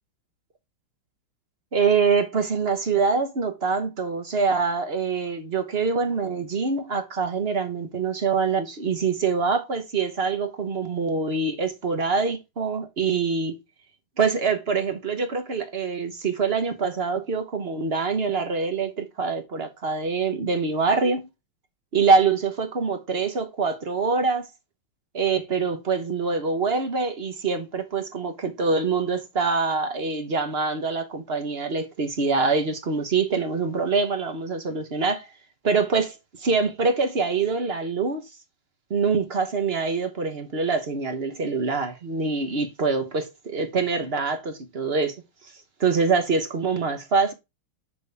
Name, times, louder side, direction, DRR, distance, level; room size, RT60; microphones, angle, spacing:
voice 1, 1.7-13.6 14.2-21.3 21.9-24.5 25.1-35.3 35.6-38.2 38.9-45.2 45.8-47.3, right 4 dB, 40° right, 1.0 m, -25 dB
6.2 x 6.1 x 3.5 m
omnidirectional pair, 2.3 m